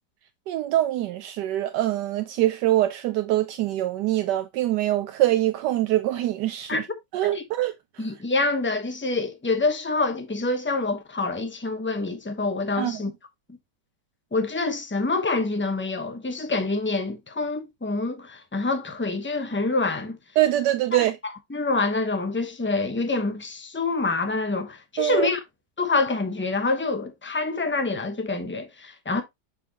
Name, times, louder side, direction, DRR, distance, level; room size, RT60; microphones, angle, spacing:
voice 1, 0.5-6.9 7.1-8.1 12.8-13.0 20.4-21.2 25.0-25.3, right 14 dB, 80° right, 1.2 m, -24 dB
voice 2, 8.0-13.1 14.3-20.2 20.9-21.1 21.5-25.4 25.8-29.2, left 3 dB, 10° left, 0.6 m, -26 dB
6.8 x 5.2 x 2.8 m
omnidirectional pair, 1.9 m